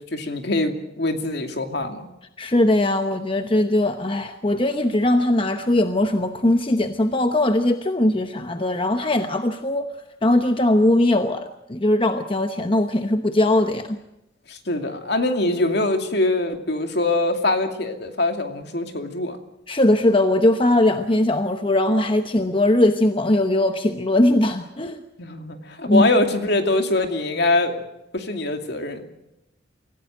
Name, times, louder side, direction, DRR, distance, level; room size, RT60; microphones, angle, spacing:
voice 1, 0.0-2.1 14.5-19.4 25.2-27.8 28.1-29.1, left 2 dB, 60° left, 6 dB, 2.5 m, -23 dB
voice 2, 2.4-9.9 10.2-14.0 19.7-25.0 25.9-26.1, left 1 dB, 25° left, 7 dB, 1.0 m, -20 dB
24.5 x 16.5 x 9.2 m, 0.89 s
head